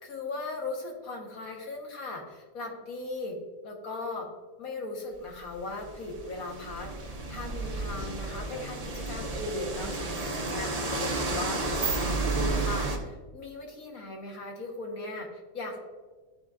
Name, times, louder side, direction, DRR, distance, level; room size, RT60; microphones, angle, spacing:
voice 1, 0.0-3.4 3.6-4.3 4.6-15.8, left 2 dB, 70° left, 0 dB, 1.6 m, -38 dB
sound 1, 5.3-13.0, right 3 dB, 35° right, 0.6 m, -32 dB
12.0 x 4.0 x 2.4 m, 1.3 s
omnidirectional pair, 1.6 m